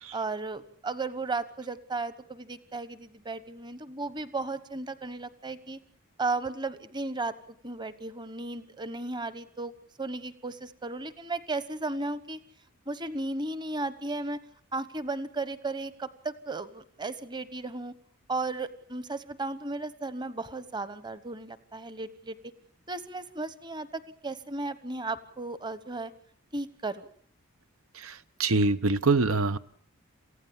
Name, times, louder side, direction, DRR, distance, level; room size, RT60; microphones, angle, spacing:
voice 1, 0.1-5.8 6.2-7.3 7.6-9.7 10.0-12.4 12.9-14.4 14.7-17.9 18.3-22.4 22.9-26.1 26.5-27.1, right 3 dB, 20° right, 14 dB, 1.2 m, -35 dB
voice 2, 28.0-29.6, right 3 dB, 70° right, 13 dB, 0.9 m, -25 dB
28.0 x 15.5 x 7.2 m, 0.63 s
head